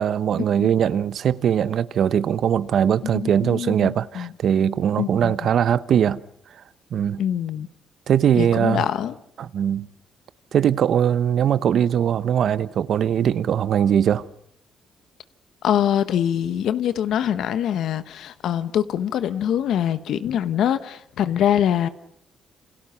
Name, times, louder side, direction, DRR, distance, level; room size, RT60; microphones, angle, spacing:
voice 1, 0.0-6.2 6.9-7.2 8.1-8.9 9.4-9.9 10.5-14.2, right 9 dB, 65° right, 0.9 m, -21 dB
voice 2, 3.0-4.3 5.0-5.3 7.2-7.7 8.3-9.1 15.6-21.9, left 10 dB, 75° left, 1.0 m, -24 dB
28.5 x 26.5 x 5.7 m
cardioid pair, 90°, 0 cm